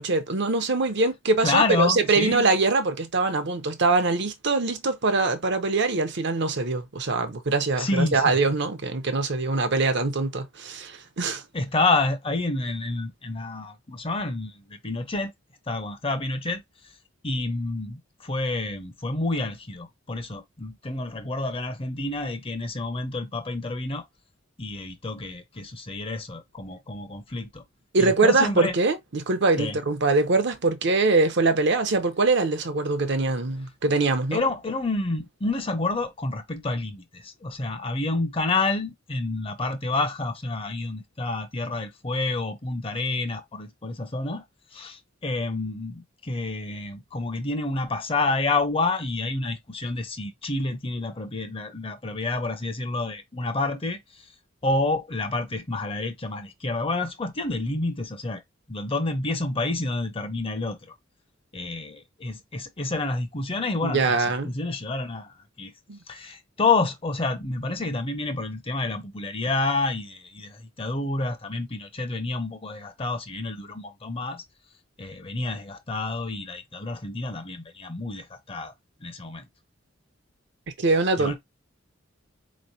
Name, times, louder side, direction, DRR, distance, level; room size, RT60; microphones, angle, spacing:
voice 1, 0.0-11.4 27.9-34.4 63.8-64.5 65.9-66.0 80.8-81.4, right 3 dB, 60° right, 0.8 m, -23 dB
voice 2, 1.4-2.4 7.8-8.3 11.5-15.3 15.7-16.6 17.2-24.0 24.6-27.6 28.0-28.7 29.6-29.8 34.3-44.4 44.7-54.3 54.6-58.4 58.7-60.9 61.5-65.7 66.1-74.4 75.0-78.7 79.0-79.5 81.2-81.4, left 3 dB, 30° left, 0.7 m, -29 dB
4.2 x 3.1 x 2.7 m
head